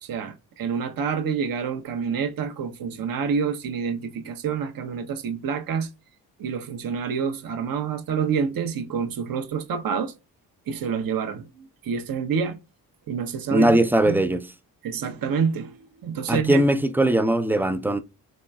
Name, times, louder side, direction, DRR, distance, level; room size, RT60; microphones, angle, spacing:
voice 1, 0.0-5.9 6.4-10.1 10.7-12.6 13.1-13.8 14.0-14.2 14.8-16.6, right 6 dB, 50° right, 0.9 m, -28 dB
voice 2, 13.5-14.5 16.3-18.0, right 1 dB, 5° right, 0.4 m, -20 dB
4.0 x 3.1 x 2.2 m
supercardioid pair, 45°, 43 cm